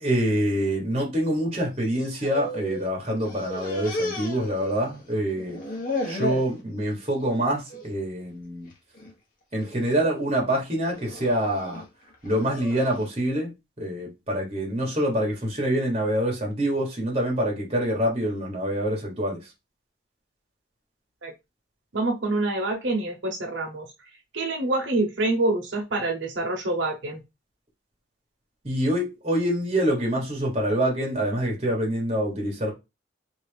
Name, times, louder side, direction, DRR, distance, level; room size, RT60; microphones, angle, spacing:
voice 1, 0.0-5.6 6.0-8.7 9.5-11.8 12.2-13.5 13.8-19.5 28.6-32.7, right 1 dB, 30° right, 1.3 m, -26 dB
sound 1, 1.8-2.9 3.2-5.1 5.4-6.5 7.0-7.4 7.7-7.9 8.7-9.1 9.6-10.0 10.8-13.0, left 1 dB, 45° left, 1.1 m, -34 dB
voice 2, 21.9-23.9 24.3-27.2, right 2 dB, 85° right, 0.9 m, -26 dB
3.3 x 2.8 x 3.3 m
head